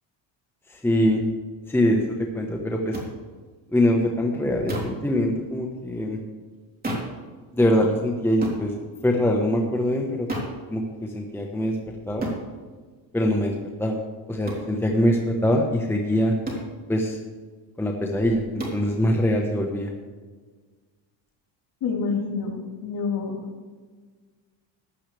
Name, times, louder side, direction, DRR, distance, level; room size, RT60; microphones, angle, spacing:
voice 1, 0.7-1.2 1.7-3.0 3.7-6.2 7.5-8.7 9.0-10.3 10.7-11.8 12.1-12.3 13.1-13.5 13.8-14.0 14.3-16.3 16.9-17.2 17.8-19.9, equal, 5° left, 0 dB, 1.2 m, -23 dB
sound 1, 2.9-3.1 4.7-5.0 6.8-7.2 8.4-8.6 10.3-10.6 12.2-12.4 14.5-14.7 16.4-16.7 18.6-18.8, right 1 dB, 20° right, 3.4 m, -30 dB
voice 2, 21.8-23.4, left 5 dB, 50° left, -2 dB, 3.6 m, -28 dB
15.5 x 12.0 x 3.4 m, 1.4 s
cardioid pair, 140°, 46 cm